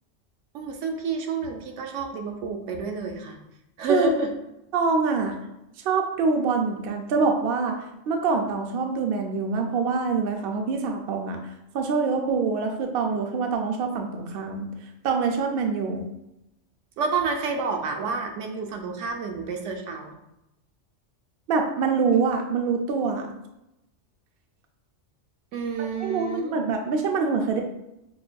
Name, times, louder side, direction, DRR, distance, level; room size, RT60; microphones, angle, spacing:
voice 1, 0.5-3.4 3.8-4.3 17.0-20.1 25.5-26.5, right 4 dB, 90° right, 3 dB, 0.9 m, -29 dB
voice 2, 3.9-4.2 4.7-5.4 5.8-7.8 8.1-11.4 11.7-14.7 15.0-16.1 21.5-23.3 25.8-27.6, right 4 dB, 60° right, 3 dB, 0.7 m, -25 dB
5.7 x 2.5 x 2.2 m, 0.88 s
omnidirectional pair, 1.2 m